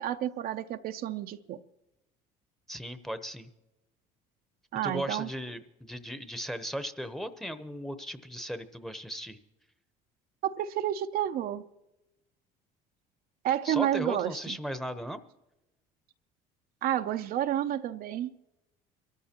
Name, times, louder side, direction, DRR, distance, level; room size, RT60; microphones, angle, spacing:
voice 1, 0.0-1.6 4.7-5.3 10.4-11.6 13.4-14.6 16.8-18.3, right 11 dB, 60° right, 0.6 m, -30 dB
voice 2, 2.7-3.5 4.8-9.4 13.6-15.2, equal, ahead, 0.9 m, -37 dB
23.0 x 13.5 x 2.9 m
supercardioid pair, 95°, 18 cm